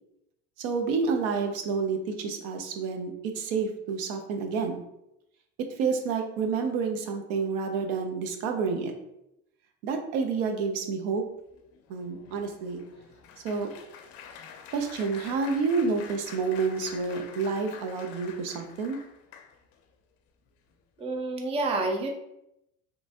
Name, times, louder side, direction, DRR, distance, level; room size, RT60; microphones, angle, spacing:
voice 1, 0.6-4.8 5.6-8.9 9.8-11.2 11.9-12.8 13.4-13.7 14.7-19.0, right 5 dB, 85° right, 5 dB, 0.7 m, -29 dB
Applause, 11.5-19.8 20.5-20.7 21.0-21.2, left 7 dB, 55° left, 0.5 m, -47 dB
voice 2, 21.0-22.1, right 2 dB, 20° right, 2 dB, 0.4 m, -28 dB
3.1 x 2.5 x 3.4 m, 0.82 s
cardioid pair, 140°, 30 cm